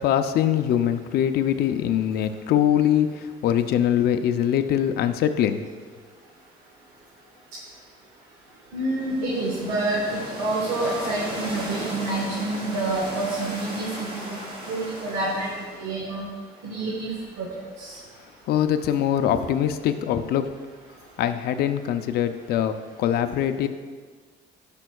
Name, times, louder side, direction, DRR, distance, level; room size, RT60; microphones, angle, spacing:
voice 1, 0.0-5.6 18.5-20.5 21.2-22.7 23.0-23.7, left 10 dB, 70° left, 9 dB, 0.5 m, -23 dB
voice 2, 8.7-14.4 14.7-15.5 15.8-16.2 16.6-17.1 17.4-17.5 17.8-17.9, right 2 dB, 85° right, -4 dB, 1.4 m, -28 dB
sound 1, 8.9-16.0, equal, 30° right, 2.2 m, -36 dB
12.0 x 5.2 x 2.3 m, 1.5 s
cardioid pair, 110°, 17 cm